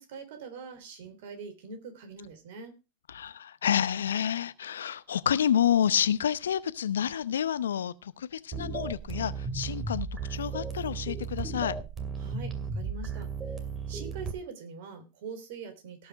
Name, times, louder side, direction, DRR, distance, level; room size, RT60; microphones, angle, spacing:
voice 1, 0.0-2.7 12.2-13.6 13.9-16.1, right 5 dB, 60° right, 3.4 m, -43 dB
voice 2, 3.1-11.7, left 9 dB, 75° left, 0.7 m, -29 dB
sound 1, 8.5-14.3, right 5 dB, 25° right, 2.4 m, -35 dB
17.5 x 5.8 x 4.8 m
hypercardioid pair, 95°, 0 cm